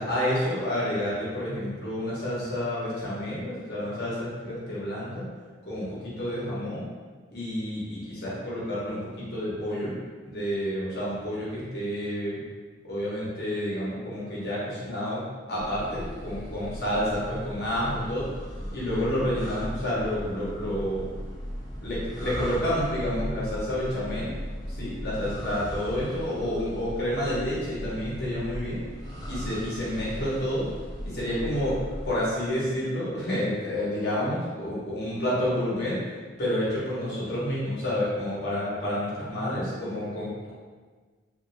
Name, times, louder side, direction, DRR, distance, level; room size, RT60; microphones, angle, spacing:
voice 1, 0.0-5.2 5.7-6.8 7.3-9.0 9.3-10.0 10.3-12.4 12.9-15.2 15.5-18.3 18.7-21.0 21.8-24.3 24.7-28.8 29.3-30.7 31.0-31.8 32.0-36.0 36.4-40.5, equal, 55° left, -8 dB, 1.1 m, -29 dB
sound 1, 15.6-32.2, equal, 20° left, 0.6 m, -37 dB
3.2 x 2.6 x 2.7 m, 1.4 s
head